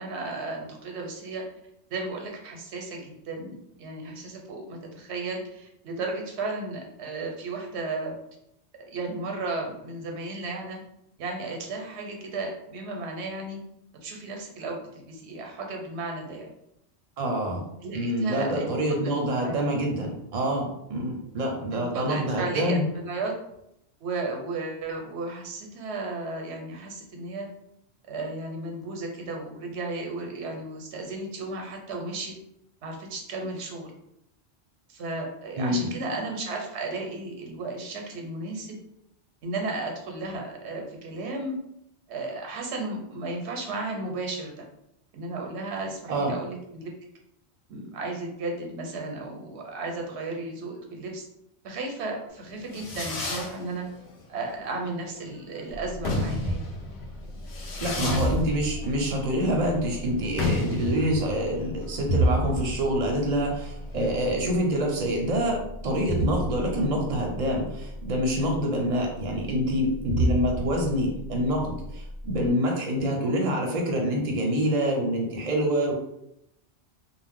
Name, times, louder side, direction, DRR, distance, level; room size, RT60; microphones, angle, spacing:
voice 1, 0.0-1.4 1.9-8.2 8.9-10.8 11.2-13.6 14.0-16.5 17.8-18.7 19.0-19.7 21.7-23.3 24.0-27.5 28.1-32.3 32.8-33.9 34.9-38.8 39.4-41.5 42.1-44.6 45.1-46.9 47.7-51.3 51.6-53.9 54.3-56.7, right 2 dB, 85° right, 2 dB, 0.9 m, -34 dB
voice 2, 17.2-17.7 17.9-22.8 35.6-35.9 46.1-46.3 57.8-75.9, equal, 45° right, 0 dB, 0.6 m, -26 dB
Fireworks, 52.4-64.6, left 2 dB, 60° left, 0.7 m, -34 dB
sound 1, 55.7-72.5, right 1 dB, 85° left, 1.0 m, -33 dB
2.5 x 2.0 x 3.5 m, 0.79 s
omnidirectional pair, 1.1 m